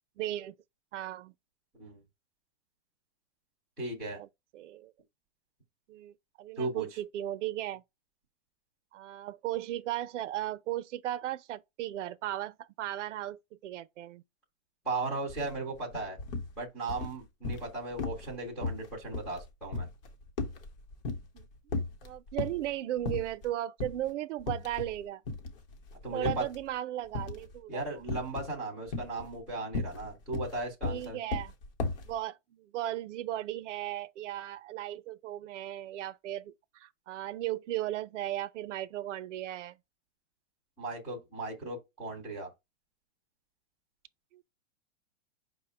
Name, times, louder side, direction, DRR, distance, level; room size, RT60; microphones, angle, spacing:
voice 1, 0.2-0.5 0.9-1.3 4.2-4.3 4.5-4.9 5.9-7.8 8.9-14.2 21.3-25.2 26.1-27.8 30.8-31.5 32.0-39.8 44.3-44.4, right 13 dB, 65° right, 0.5 m, -36 dB
voice 2, 3.8-4.2 6.6-6.9 14.8-16.2 16.6-19.9 26.0-26.4 27.7-31.2 40.8-42.5, right 2 dB, 5° left, 0.3 m, -36 dB
sound 1, 15.3-15.5 15.8-16.5 16.9-17.7 18.0-18.3 18.6-21.4 21.7-22.7 23.1-23.5 23.8-24.0 24.4-25.0 25.3-26.6 27.1-27.6 28.1-28.5 28.9-32.1, left 3 dB, 45° left, 0.9 m, -35 dB
5.3 x 2.1 x 4.2 m
hypercardioid pair, 155°, 39 cm